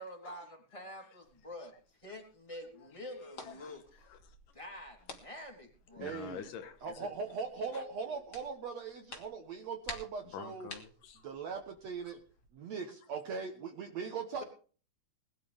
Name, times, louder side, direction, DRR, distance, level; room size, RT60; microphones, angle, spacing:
voice 1, 0.0-1.7 2.0-3.8 4.5-6.1 7.7-8.2, left 1 dB, 10° left, 3.7 m, -47 dB
sound 1, 1.2-12.5, left 3 dB, 35° left, 2.7 m, -53 dB
voice 2, 2.7-4.4 5.9-7.1 7.6-7.8 10.2-11.3 12.0-12.2, left 7 dB, 85° left, 3.1 m, -48 dB
voice 3, 6.0-6.4 6.8-10.7 11.2-12.2 12.5-14.4, right 5 dB, 60° right, 2.3 m, -40 dB
21.0 x 12.5 x 3.6 m
omnidirectional pair, 3.7 m